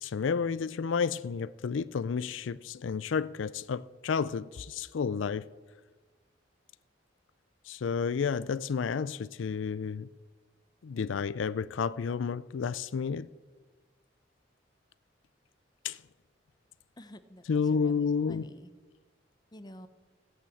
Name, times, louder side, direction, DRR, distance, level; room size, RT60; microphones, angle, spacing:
voice 1, 0.0-5.5 7.7-10.1 10.8-13.3 15.8-16.0 17.5-18.5, left 6 dB, 90° left, 0.4 m, -31 dB
voice 2, 17.0-18.7 19.5-19.9, left 1 dB, 20° left, 0.8 m, -49 dB
15.5 x 8.8 x 7.7 m
head